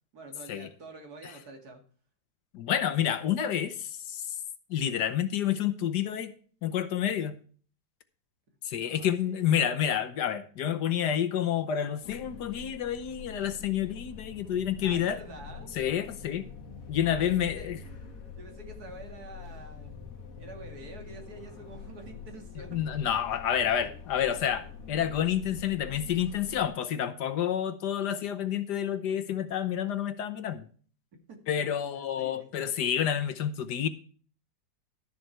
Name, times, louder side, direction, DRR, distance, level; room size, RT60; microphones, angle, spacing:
voice 1, 0.1-1.8 8.7-9.8 14.8-15.7 17.1-19.9 20.4-22.8 29.3-29.4 31.3-32.7, right 2 dB, 55° right, 2.7 m, -48 dB
voice 2, 2.5-4.2 4.7-6.3 6.6-7.3 8.7-15.2 15.8-16.4 16.9-17.8 22.7-30.7 31.5-33.9, left 9 dB, 70° left, 1.4 m, -29 dB
sound 1, 12.0-26.7, left 6 dB, 50° left, 1.8 m, -45 dB
12.5 x 7.1 x 4.5 m
omnidirectional pair, 2.0 m